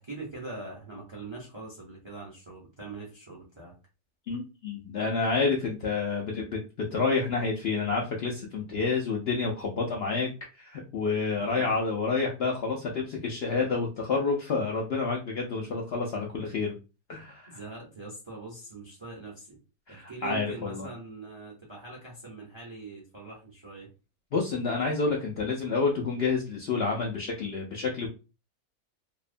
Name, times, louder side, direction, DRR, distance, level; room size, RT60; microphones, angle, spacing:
voice 1, 0.0-3.7 11.3-11.8 17.5-19.6 19.9-23.9, right 3 dB, 45° right, -3 dB, 0.3 m, -42 dB
voice 2, 4.3-6.6 6.9-10.3 10.6-16.8 17.1-17.6 19.9-20.9 24.3-28.1, left 4 dB, 90° left, -1 dB, 0.5 m, -29 dB
2.8 x 2.0 x 2.5 m, 0.31 s
omnidirectional pair, 1.6 m